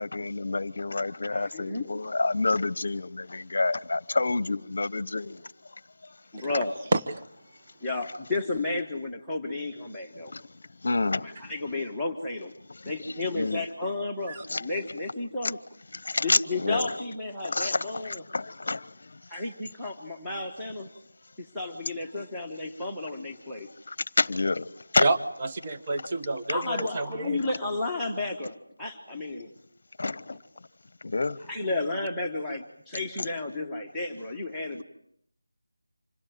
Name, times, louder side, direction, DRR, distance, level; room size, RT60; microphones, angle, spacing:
voice 1, 0.0-5.4 10.3-10.4 10.8-11.3 12.8-12.9 13.3-13.6 14.5-14.6 15.4-15.5 16.0-16.9 17.4-18.8 23.9-24.7 24.9-25.1 30.0-30.2 31.0-31.4 33.2-33.3, left 3 dB, 45° left, 20 dB, 0.9 m, -28 dB
voice 2, 1.3-2.0 6.3-6.8 7.8-10.3 11.2-12.6 12.8-15.6 16.2-18.3 19.3-20.9 21.4-23.7 26.5-29.5 30.2-30.4 31.5-34.8, left 2 dB, ahead, -7 dB, 1.3 m, -32 dB
voice 3, 25.0-27.4, right 2 dB, 20° right, 6 dB, 1.0 m, -28 dB
26.5 x 17.5 x 9.4 m, 0.70 s
figure-of-eight pair, 175°, 0 cm